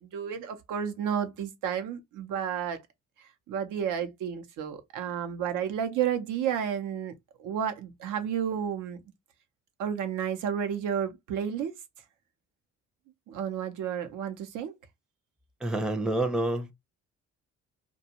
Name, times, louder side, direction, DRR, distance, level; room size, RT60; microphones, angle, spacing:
voice 1, 0.0-2.8 3.5-7.1 7.4-9.0 9.8-11.7 13.3-14.7, right 8 dB, 85° right, 0.7 m, -31 dB
voice 2, 15.6-16.7, right 1 dB, ahead, 0.5 m, -28 dB
2.6 x 2.3 x 2.7 m
cardioid pair, 90°, 30 cm